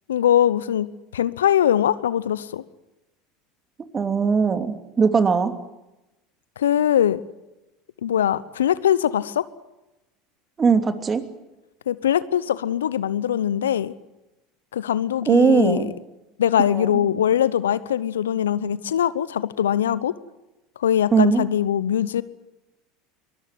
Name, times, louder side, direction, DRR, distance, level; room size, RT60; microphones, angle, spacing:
voice 1, 0.1-0.9 1.1-2.6 6.6-7.2 8.0-9.4 11.9-13.9 14.7-15.9 16.4-20.1 20.8-22.2, left 10 dB, 80° left, 18 dB, 0.8 m, -21 dB
voice 2, 3.9-5.5 10.6-11.2 15.3-15.9 16.7-17.0 21.1-21.4, right 5 dB, 25° right, 8 dB, 2.8 m, -19 dB
23.5 x 20.0 x 9.6 m, 0.98 s
hypercardioid pair, 75°, 0 cm